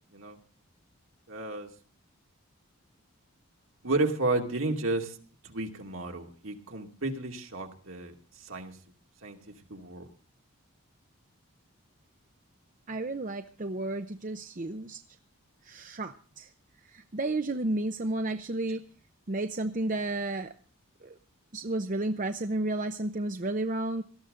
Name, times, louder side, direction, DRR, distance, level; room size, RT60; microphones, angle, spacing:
voice 1, 1.3-1.7 3.8-5.2 5.4-8.8 9.2-10.1, right 2 dB, 70° right, 3 dB, 2.5 m, -32 dB
voice 2, 12.9-15.0 15.6-16.5 16.8-18.8 19.3-20.5 21.0-21.2 21.5-24.0, right 2 dB, 40° right, 7 dB, 0.7 m, -32 dB
18.5 x 14.0 x 3.8 m, 0.40 s
head